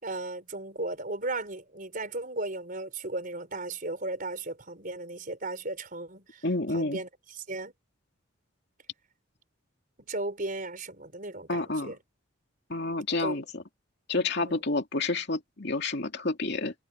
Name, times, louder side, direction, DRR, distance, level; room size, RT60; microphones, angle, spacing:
voice 1, 0.0-6.5 6.7-7.7 10.1-12.0 13.2-13.4 14.1-14.6, right 2 dB, 45° right, 4.4 m, -36 dB
voice 2, 6.4-7.0 11.5-11.9 12.7-13.6 14.1-16.7, left 2 dB, 55° left, 2.6 m, -29 dB
head